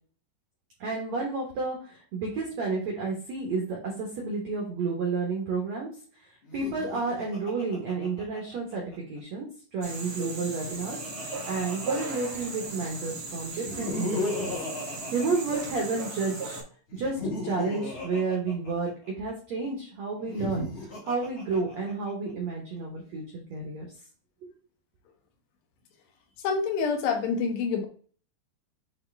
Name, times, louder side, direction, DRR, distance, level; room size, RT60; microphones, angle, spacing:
voice 1, 0.8-8.8 9.1-9.5 9.7-14.5 15.1-16.6 16.9-23.9 24.4-24.5, right 4 dB, 80° right, -1 dB, 1.5 m, -31 dB
Laughter, 6.4-9.0 10.3-12.7 13.5-16.1 16.9-19.3 20.2-22.1, left 2 dB, 50° left, 1.5 m, -36 dB
sound 1, 9.8-16.6, right 3 dB, 30° right, 2.0 m, -37 dB
voice 2, 26.4-27.9, left 5 dB, 75° left, 4 dB, 2.8 m, -27 dB
8.6 x 3.3 x 3.4 m, 0.43 s
omnidirectional pair, 5.2 m